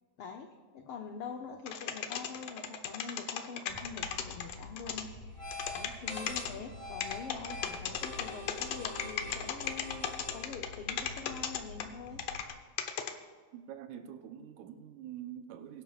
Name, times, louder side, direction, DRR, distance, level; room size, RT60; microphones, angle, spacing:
voice 1, 0.2-12.2, left 5 dB, 90° left, 4 dB, 1.2 m, -45 dB
sound 1, 1.7-5.0 5.5-6.5 7.0-12.5 12.8-13.1, left 9 dB, 70° left, 1.7 m, -35 dB
sound 2, 3.7-12.5, left 2 dB, 10° left, 3.7 m, -45 dB
voice 2, 13.5-15.8, right 10 dB, 90° right, 7 dB, 2.2 m, -45 dB
21.5 x 11.0 x 2.4 m, 1.5 s
omnidirectional pair, 3.4 m